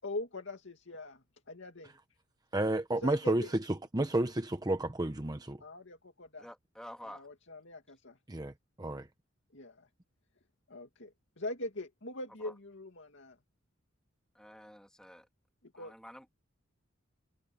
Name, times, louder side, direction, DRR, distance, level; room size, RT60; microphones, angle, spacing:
voice 1, 0.0-1.9 2.9-3.5 5.6-6.5 7.0-8.2 9.5-9.9 10.7-13.4 15.7-15.9, left 2 dB, 65° left, 2.5 m, -42 dB
voice 2, 2.5-5.6 8.3-8.5 8.8-9.1, right 1 dB, 20° right, 0.9 m, -31 dB
voice 3, 6.4-7.3 12.4-12.5 14.3-15.3 15.8-16.3, equal, 5° left, 2.3 m, -49 dB
head